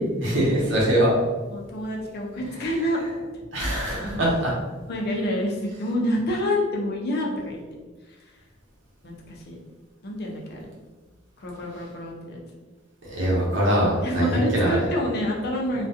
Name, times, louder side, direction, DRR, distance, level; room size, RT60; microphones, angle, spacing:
voice 1, 0.2-1.1 3.5-4.5 13.0-14.9, right 1 dB, 65° right, -5 dB, 0.9 m, -22 dB
voice 2, 1.5-3.4 4.1-4.2 4.9-7.6 8.1-8.3 9.0-9.6 10.0-10.7 11.4-12.4 14.0-15.9, left 1 dB, 55° left, -1 dB, 0.5 m, -28 dB
2.4 x 2.2 x 2.6 m, 1.3 s
head